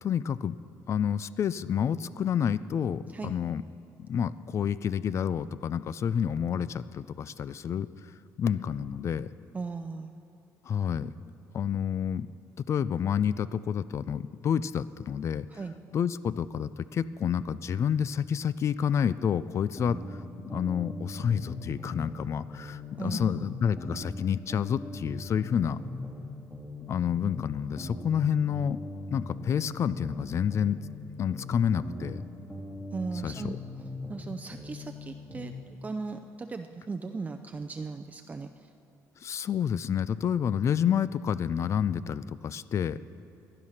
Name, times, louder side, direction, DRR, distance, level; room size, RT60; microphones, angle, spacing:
voice 1, 0.0-0.6 0.9-3.6 4.1-7.9 8.4-9.3 10.7-11.1 11.5-12.3 12.6-15.5 15.9-20.2 20.5-25.8 26.9-28.8 29.1-30.8 31.2-32.3 33.2-33.6 39.2-43.0, left 8 dB, 45° left, 16 dB, 0.4 m, -29 dB
voice 2, 9.5-10.1 15.5-15.8 23.0-23.4 32.9-33.6 34.1-35.5 35.8-38.5, right 4 dB, 20° right, 6 dB, 0.5 m, -37 dB
sound 1, 19.8-22.2 22.5-26.2 26.5-30.2 30.5-34.2 34.5-35.6, left 2 dB, 15° left, 3.0 m, -41 dB
17.0 x 11.0 x 5.8 m, 2.7 s
cardioid pair, 120°, 7 cm